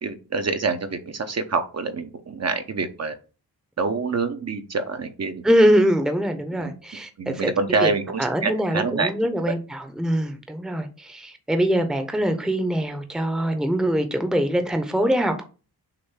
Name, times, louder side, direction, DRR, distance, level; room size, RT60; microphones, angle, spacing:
voice 1, 0.0-3.1 3.8-5.4 6.6-6.7 7.2-9.1 9.5-9.6, right 4 dB, 40° right, 0.9 m, -26 dB
voice 2, 5.4-7.5 7.8-7.9 8.2-15.4, equal, ahead, 0.8 m, -23 dB
6.7 x 2.6 x 5.7 m
cardioid pair, 105°, 39 cm